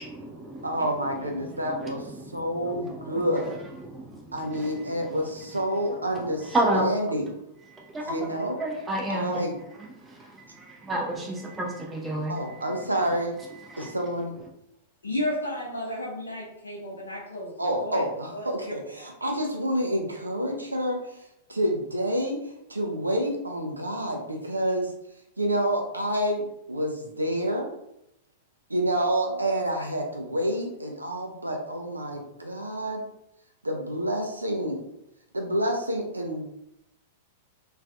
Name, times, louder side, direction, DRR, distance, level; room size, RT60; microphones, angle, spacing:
voice 1, 0.0-0.7 1.8-1.9 3.9-4.3 4.6-4.7 6.5-6.9 7.7-8.0 8.6-9.4 10.6-12.3 13.7-13.9, right 1 dB, 15° right, -1 dB, 0.4 m, -29 dB
voice 2, 0.6-2.1 2.3-3.5 4.3-7.3 8.0-8.6 9.1-9.6 12.3-13.4 13.8-14.3 17.6-21.2 21.5-24.9 25.4-27.7 28.7-33.0 33.6-34.8 35.3-36.4, equal, 85° right, 2 dB, 0.3 m, -28 dB
voice 3, 15.0-18.0 18.3-18.7, left 1 dB, 75° left, -5 dB, 0.5 m, -33 dB
2.4 x 2.3 x 2.2 m, 0.81 s
figure-of-eight pair, 100°, 0 cm